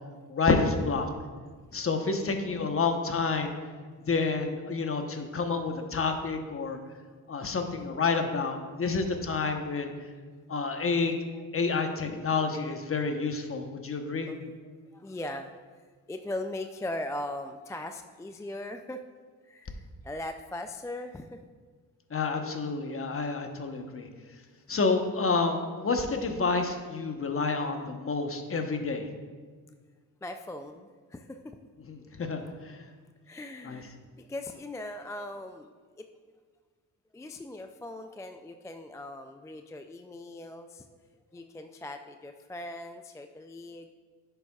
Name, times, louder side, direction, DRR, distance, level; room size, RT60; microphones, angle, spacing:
voice 1, 0.3-1.1 1.7-3.5 4.1-6.8 7.3-9.9 10.5-11.1 11.5-14.3 22.1-24.1 24.7-29.0 31.9-32.8 33.6-33.8, left 4 dB, 35° left, 5 dB, 1.0 m, -29 dB
voice 2, 1.9-2.3 11.3-11.4 14.3-14.6 14.9-15.5 16.1-19.0 19.4-21.4 30.2-31.6 33.2-35.7 36.0-36.1 37.1-40.9 41.3-43.9, left 1 dB, 10° left, 7 dB, 0.3 m, -39 dB
10.5 x 6.8 x 2.4 m, 1.5 s
supercardioid pair, 65°, 39 cm